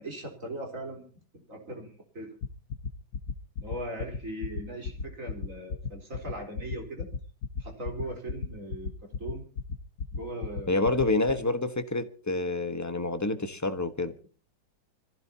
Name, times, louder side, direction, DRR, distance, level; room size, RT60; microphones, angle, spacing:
voice 1, 0.0-2.4 3.6-7.1 7.6-8.9 9.2-9.5 10.1-11.4, right 1 dB, 40° right, 4.3 m, -39 dB
sound 1, 2.4-11.3, left 5 dB, 50° left, 1.3 m, -33 dB
voice 2, 10.7-14.1, left 2 dB, 15° left, 0.8 m, -28 dB
25.5 x 15.5 x 2.8 m
omnidirectional pair, 2.2 m